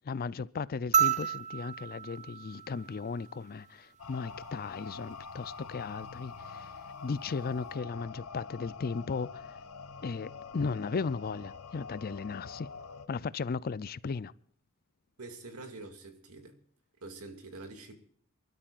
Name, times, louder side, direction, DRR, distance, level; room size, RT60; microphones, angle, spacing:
voice 1, 0.0-6.7 7.0-9.6 10.0-12.7 13.1-14.3, left 4 dB, 45° left, 0.5 m, -36 dB
sound 1, 0.9-3.5 5.1-5.2, right 8 dB, 35° right, 0.5 m, -31 dB
sound 2, 4.0-13.1, left 5 dB, 75° left, 1.0 m, -45 dB
voice 2, 15.2-16.6 17.0-18.0, right 2 dB, 85° right, 2.3 m, -46 dB
28.0 x 12.5 x 2.5 m
head